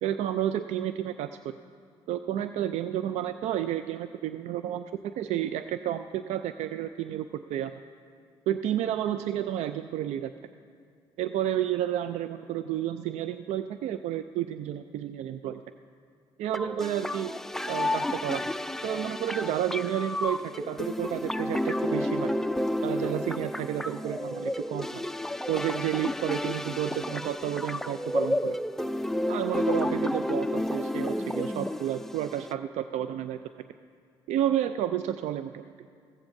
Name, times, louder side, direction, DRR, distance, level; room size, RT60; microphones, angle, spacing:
voice 1, 0.0-1.6 2.1-7.8 8.5-10.3 11.2-15.6 16.4-17.3 17.7-18.5 18.8-22.3 22.8-25.0 25.5-28.6 29.3-33.4 34.3-35.7, right 11 dB, 65° right, 11 dB, 0.4 m, -31 dB
sound 1, 16.5-32.5, left 1 dB, 5° left, 0.4 m, -31 dB
15.5 x 15.5 x 2.6 m, 2.2 s
hypercardioid pair, 55°, 12 cm